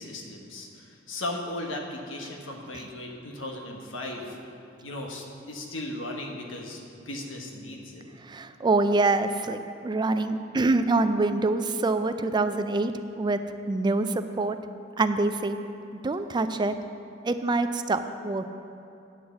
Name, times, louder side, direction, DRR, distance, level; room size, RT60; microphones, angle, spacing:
voice 1, 0.0-4.4 4.8-6.8 7.1-8.0, left 1 dB, 90° left, 1 dB, 1.3 m, -36 dB
voice 2, 8.2-12.9 13.2-13.4 13.7-14.6 15.0-15.6 16.0-16.7 17.2-18.5, right 3 dB, 25° right, 9 dB, 0.3 m, -25 dB
9.4 x 6.3 x 7.0 m, 2.8 s
head